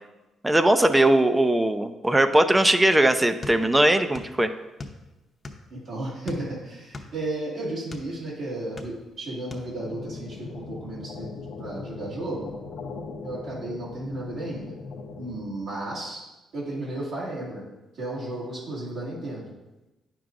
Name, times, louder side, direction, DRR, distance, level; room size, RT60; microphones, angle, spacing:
voice 1, 0.4-4.5, right 1 dB, 10° right, 9 dB, 0.5 m, -20 dB
sound 1, 3.4-4.4 4.6-5.8 6.2-8.1 8.6-9.2 9.5-9.7, left 3 dB, 30° left, 0.8 m, -40 dB
voice 2, 5.7-12.5 13.2-14.7 15.2-16.3 16.5-17.7 17.9-19.5, right 1 dB, 70° right, -8 dB, 2.1 m, -34 dB
sound 2, 9.8-15.5, left 4 dB, 80° left, 0.7 m, -39 dB
9.2 x 6.0 x 2.6 m, 1.0 s
cardioid pair, 90°, 0 cm